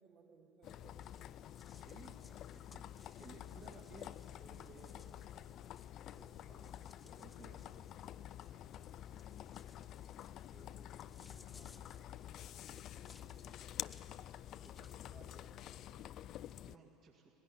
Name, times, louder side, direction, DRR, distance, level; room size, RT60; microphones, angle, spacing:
voice 1, 0.0-1.4 3.7-3.9 5.0-5.7 6.1-6.7 14.7-15.1, right 4 dB, 60° right, 0 dB, 2.6 m, -66 dB
sound 1, 0.6-16.8, left 11 dB, 50° left, 0.4 m, -49 dB
sound 2, 0.7-15.0, left 4 dB, 20° left, 1.0 m, -67 dB
voice 2, 1.7-5.2 6.5-9.6 10.0-13.9 14.6-17.4, right 5 dB, 45° right, -3 dB, 2.2 m, -63 dB
18.5 x 16.5 x 9.7 m, 3.0 s
figure-of-eight pair, 70°, 0 cm